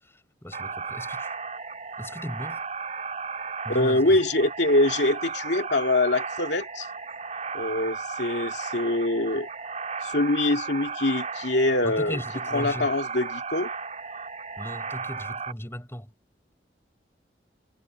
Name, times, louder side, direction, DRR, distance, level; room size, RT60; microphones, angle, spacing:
voice 1, 0.0-1.3 2.0-2.6 3.6-4.2 11.8-12.9 14.6-16.1, equal, 15° left, 7.8 m, -37 dB
sound 1, 0.5-15.5, right 5 dB, 40° right, 4.1 m, -35 dB
voice 2, 3.7-6.9 7.5-9.5 10.0-12.2 12.5-13.7, left 2 dB, 75° left, 2.3 m, -24 dB
head